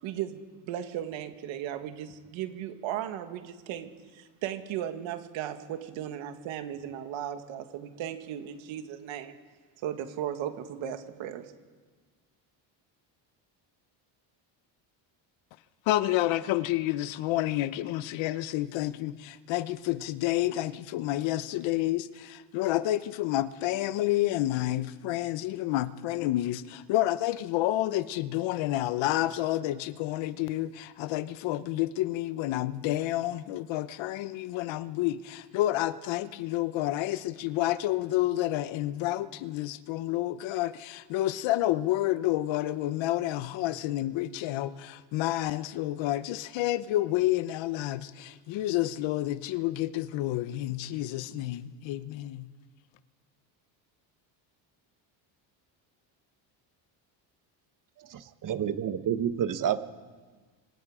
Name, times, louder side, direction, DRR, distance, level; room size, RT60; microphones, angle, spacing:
voice 1, 0.0-9.3 9.8-11.5, right 10 dB, 75° right, 2.0 m, -36 dB
voice 2, 15.9-52.5, left 15 dB, 75° left, 1.0 m, -29 dB
voice 3, 58.0-59.8, right 9 dB, 40° right, 1.2 m, -29 dB
26.0 x 25.5 x 5.0 m
cardioid pair, 145°, 46 cm